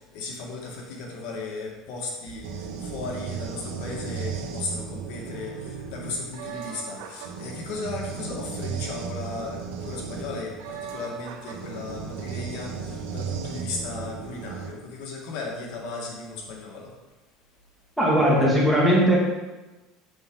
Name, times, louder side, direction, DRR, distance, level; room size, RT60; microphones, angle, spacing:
voice 1, 0.1-16.9, left 3 dB, 70° left, -1 dB, 2.0 m, -36 dB
sound 1, 2.4-14.7, right 6 dB, 90° right, 1.2 m, -35 dB
voice 2, 18.0-19.2, equal, 5° right, -6 dB, 2.4 m, -19 dB
7.8 x 7.1 x 3.9 m, 1.1 s
cardioid pair, 145°, 0 cm